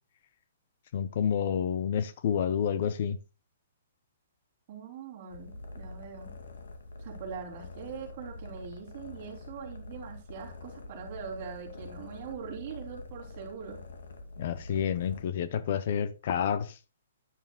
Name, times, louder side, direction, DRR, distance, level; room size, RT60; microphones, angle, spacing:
voice 1, 0.9-3.2 14.4-16.8, left 8 dB, 45° left, 0.6 m, -29 dB
voice 2, 4.7-6.3 7.0-13.8, right 6 dB, 30° right, 3.2 m, -42 dB
sound 1, 5.3-15.2, left 2 dB, 85° left, 2.3 m, -45 dB
10.5 x 9.9 x 2.3 m
hypercardioid pair, 170°, 0 cm